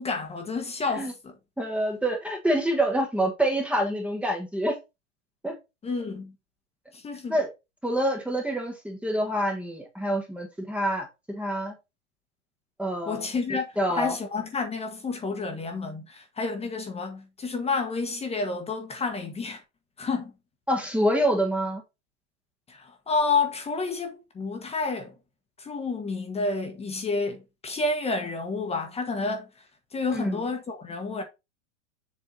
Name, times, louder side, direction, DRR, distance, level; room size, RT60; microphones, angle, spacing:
voice 1, 0.0-1.3 5.8-6.3 6.9-7.4 13.1-13.6 13.9-19.6 20.0-20.3 22.7-25.1 25.6-29.5 29.9-31.2, left 3 dB, 15° left, 1.3 m, -30 dB
voice 2, 1.6-4.8 5.4-5.6 7.3-7.5 7.8-11.7 12.8-14.1 20.7-21.8 30.1-30.4, right 1 dB, 5° right, 1.3 m, -27 dB
7.3 x 3.5 x 3.9 m
supercardioid pair, 130°, 36 cm